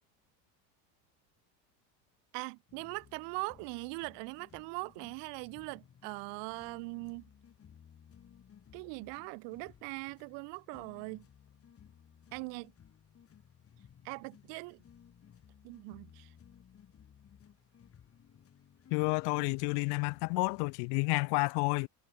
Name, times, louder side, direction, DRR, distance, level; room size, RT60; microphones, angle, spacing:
voice 1, 2.3-7.2 8.7-11.2 12.3-12.7 14.0-14.8 15.6-16.3, right 33 dB, 60° right, 1.2 m, -41 dB
sound 1, 2.7-20.8, left 8 dB, 30° left, 7.5 m, -59 dB
voice 2, 18.9-21.9, left 36 dB, 55° left, 0.5 m, -30 dB
supercardioid pair, 135°, 47 cm